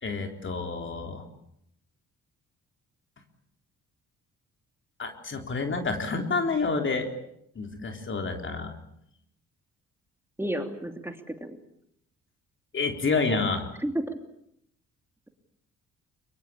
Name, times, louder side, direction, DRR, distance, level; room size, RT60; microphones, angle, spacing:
voice 1, 0.0-1.2 5.0-7.1 7.6-8.8 12.7-13.7, left 4 dB, 40° left, 5 dB, 3.7 m, -29 dB
voice 2, 10.4-11.6 13.8-14.2, right 1 dB, 10° right, 6 dB, 3.0 m, -32 dB
24.0 x 22.0 x 8.5 m, 0.74 s
cardioid pair, 90°, 30 cm